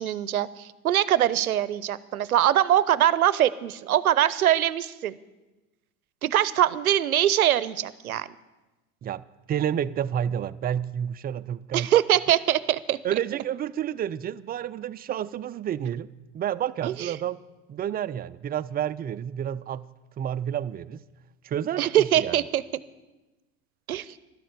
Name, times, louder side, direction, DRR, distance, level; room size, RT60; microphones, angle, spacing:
voice 1, 0.0-5.2 6.2-8.3 11.7-13.0 16.8-17.1 21.8-22.6 23.9-24.1, right 11 dB, 90° right, 18 dB, 0.7 m, -23 dB
voice 2, 9.5-11.9 13.0-16.1 16.3-17.4 17.7-19.9 20.2-21.0 21.4-22.4, right 10 dB, 25° right, 14 dB, 0.4 m, -30 dB
12.5 x 12.0 x 8.1 m, 1.1 s
hypercardioid pair, 80°, 42 cm